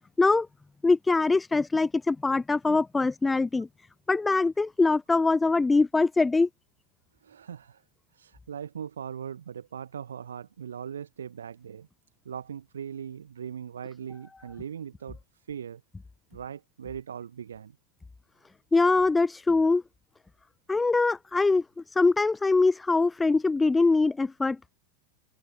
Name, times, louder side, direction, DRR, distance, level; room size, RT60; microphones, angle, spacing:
voice 1, 0.8-3.7 4.1-6.5 18.7-19.8 20.7-21.6 21.9-24.6, left 3 dB, 10° left, 0.3 m, -23 dB
voice 2, 7.2-7.8 8.1-11.9 12.2-15.2 15.5-15.8 16.3-17.8, right 8 dB, 65° right, 1.4 m, -39 dB
figure-of-eight pair, 90°, 0 cm